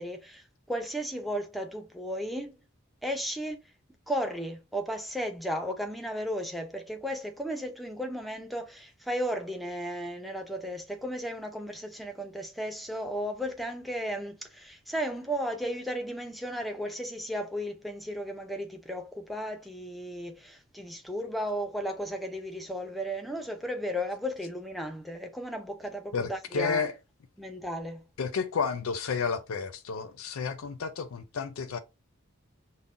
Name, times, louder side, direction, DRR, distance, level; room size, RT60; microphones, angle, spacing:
voice 1, 0.0-2.6 3.0-3.6 4.1-26.9 27.4-28.0, equal, ahead, 0.5 m, -34 dB
voice 2, 26.1-26.9 28.2-31.8, left 5 dB, 85° left, 0.5 m, -31 dB
5.4 x 2.1 x 2.5 m
head